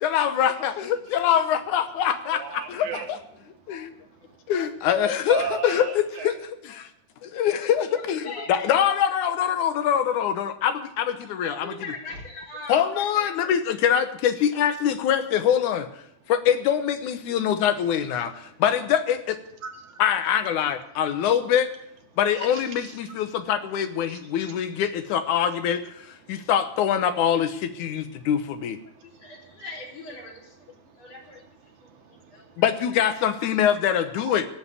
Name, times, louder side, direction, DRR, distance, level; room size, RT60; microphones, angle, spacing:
voice 1, 0.0-3.2 3.7-3.9 4.5-6.4 6.6-6.9 7.2-11.7 12.7-15.9 16.3-18.3 18.6-19.4 20.0-21.7 22.2-25.9 26.3-28.8 32.6-34.5, left 9 dB, 85° left, 9 dB, 2.5 m, -24 dB
voice 2, 2.3-3.1 3.6-3.7 5.3-6.3 18.1-18.6 19.6-20.0 22.4-23.1 24.1-24.6 26.2-26.5 28.1-28.3 28.9-29.7 30.8-31.1 31.6-32.7, right 6 dB, 75° right, 3 dB, 3.2 m, -38 dB
voice 3, 7.8-8.5 11.3-13.5 29.2-30.6 31.0-31.4 32.1-32.5 33.0-33.1, left 2 dB, 60° left, -1 dB, 5.0 m, -40 dB
17.0 x 7.4 x 9.8 m, 0.73 s
omnidirectional pair, 3.4 m